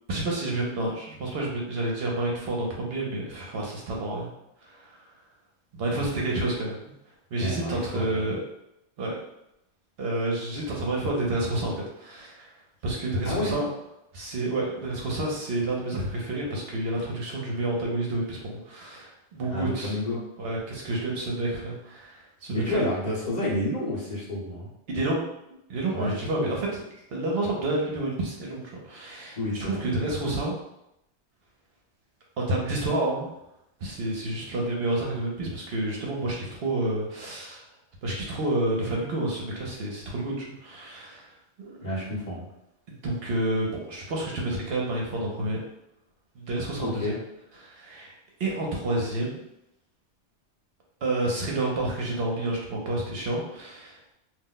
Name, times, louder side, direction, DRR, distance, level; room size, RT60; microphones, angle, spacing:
voice 1, 0.1-4.3 4.6-5.0 5.7-6.9 7.3-8.4 9.0-9.2 10.0-12.5 12.8-13.7 14.1-20.0 20.4-22.8 24.9-25.2 25.5-26.7 27.1-30.6 32.4-33.3 33.8-37.6 38.0-41.3 41.6-41.8 43.0-45.6 46.4-47.1 47.6-48.1 48.4-49.4 51.0-54.1, right 2 dB, 65° right, -2 dB, 0.8 m, -29 dB
voice 2, 7.4-8.3 13.2-13.6 19.5-20.2 22.5-24.7 25.9-26.5 29.4-29.8 41.8-42.4 46.8-47.2, left 1 dB, 40° left, -7 dB, 0.9 m, -30 dB
2.4 x 2.0 x 3.8 m, 0.83 s
omnidirectional pair, 1.2 m